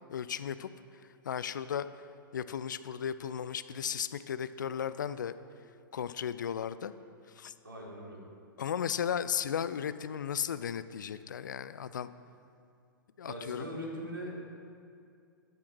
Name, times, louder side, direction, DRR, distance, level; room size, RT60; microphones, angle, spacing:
voice 1, 0.1-0.7 1.2-1.9 2.3-5.4 5.9-6.9 7.4-7.5 8.6-12.1 13.2-13.6, left 8 dB, 60° left, 14 dB, 0.6 m, -35 dB
voice 2, 7.6-8.2 13.3-14.3, equal, 75° right, -4 dB, 4.1 m, -40 dB
14.0 x 12.0 x 4.7 m, 2.4 s
figure-of-eight pair, 105°, 12 cm